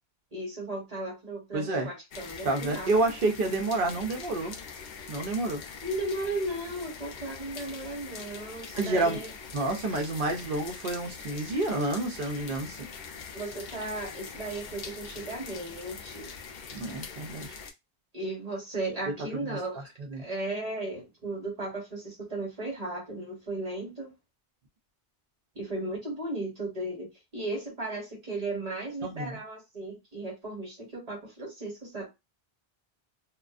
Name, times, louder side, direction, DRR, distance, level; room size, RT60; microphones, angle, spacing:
voice 1, 0.3-2.9 5.8-9.3 13.3-16.3 18.1-19.9 20.2-24.1 25.5-32.1, right 2 dB, 40° right, 1.0 m, -35 dB
voice 2, 1.5-1.9 2.4-4.5 5.1-5.6 8.7-9.2 9.5-12.9 16.7-17.6 19.3-19.6 20.0-20.3 29.0-29.4, right 2 dB, 60° right, 0.7 m, -29 dB
sound 1, 2.1-17.7, left 6 dB, 60° left, 0.6 m, -43 dB
2.4 x 2.3 x 2.4 m
omnidirectional pair, 1.0 m